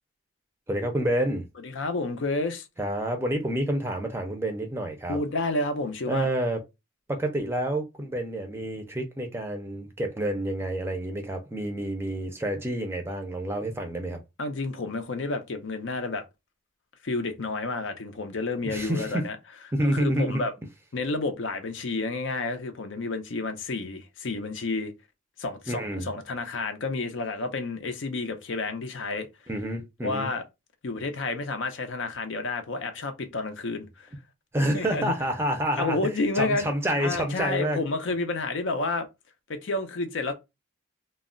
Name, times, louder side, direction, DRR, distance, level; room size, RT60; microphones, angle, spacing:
voice 1, 0.7-1.4 2.8-5.2 6.1-6.6 7.1-14.2 18.7-19.2 19.7-20.4 25.7-26.1 29.5-30.3 34.5-36.0 36.4-37.8, right 1 dB, 10° right, 0.5 m, -28 dB
voice 2, 1.6-2.7 5.1-6.3 14.4-16.2 17.0-19.4 19.8-20.5 20.9-24.9 25.4-29.3 30.0-30.4 30.8-34.1 34.7-35.1 35.8-39.1 39.5-40.3, left 3 dB, 75° left, 0.5 m, -30 dB
2.3 x 2.0 x 3.6 m
head